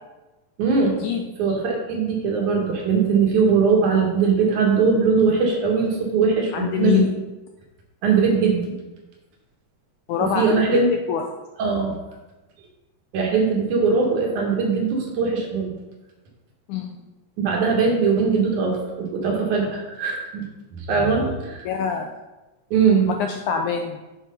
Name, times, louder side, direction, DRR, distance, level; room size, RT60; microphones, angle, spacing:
voice 1, 0.6-1.1 1.4-7.1 8.0-8.7 10.2-10.9 11.6-12.0 13.1-15.7 17.4-20.5 20.7-21.7 22.7-23.1, right 5 dB, 65° right, 0 dB, 2.5 m, -20 dB
voice 2, 6.5-7.1 10.1-10.7 11.1-11.2 16.7-17.0 21.7-22.1 23.1-24.0, left 8 dB, 85° left, 3 dB, 1.8 m, -24 dB
8.7 x 4.8 x 5.2 m, 1.1 s
omnidirectional pair, 4.1 m